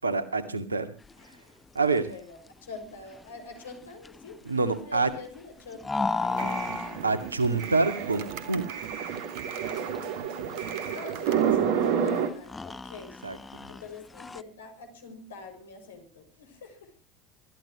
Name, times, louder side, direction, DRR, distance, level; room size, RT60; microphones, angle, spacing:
voice 1, 0.0-0.9 1.7-2.1 4.5-5.1 7.0-8.7 13.2-13.4, right 3 dB, 85° right, 12 dB, 2.1 m, -26 dB
sound 1, 1.0-14.4, left 3 dB, 15° left, 0.9 m, -37 dB
voice 2, 2.1-4.4 4.6-6.6 10.9-13.1 13.7-16.9, left 4 dB, 75° left, 6 dB, 6.0 m, -45 dB
sound 2, 6.2-12.3, right 8 dB, 60° right, 2.9 m, -30 dB
27.5 x 15.0 x 3.1 m, 0.35 s
figure-of-eight pair, 70°, 0 cm